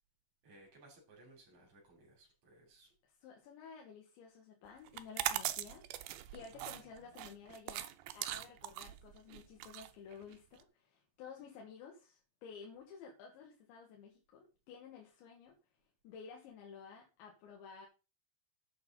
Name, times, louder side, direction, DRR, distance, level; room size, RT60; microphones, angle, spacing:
voice 1, 0.4-2.9, right 2 dB, 45° right, -1 dB, 4.3 m, -61 dB
voice 2, 3.0-5.8 6.3-15.6 16.0-17.9, left 6 dB, 85° left, 0 dB, 4.0 m, -53 dB
sound 1, 4.9-10.6, right 13 dB, 80° right, 2.3 m, -40 dB
11.0 x 8.4 x 4.0 m, 0.31 s
omnidirectional pair, 5.1 m